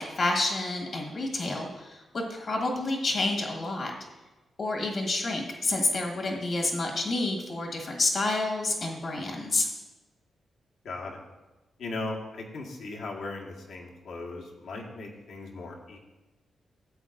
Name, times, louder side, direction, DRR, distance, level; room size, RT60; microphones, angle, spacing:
voice 1, 0.0-3.9 4.6-9.7, left 2 dB, 55° left, 1 dB, 1.5 m, -29 dB
voice 2, 10.8-11.2 11.8-16.0, left 2 dB, 80° left, -1 dB, 1.5 m, -38 dB
13.0 x 8.0 x 2.6 m, 1.1 s
cardioid pair, 95°, 0 cm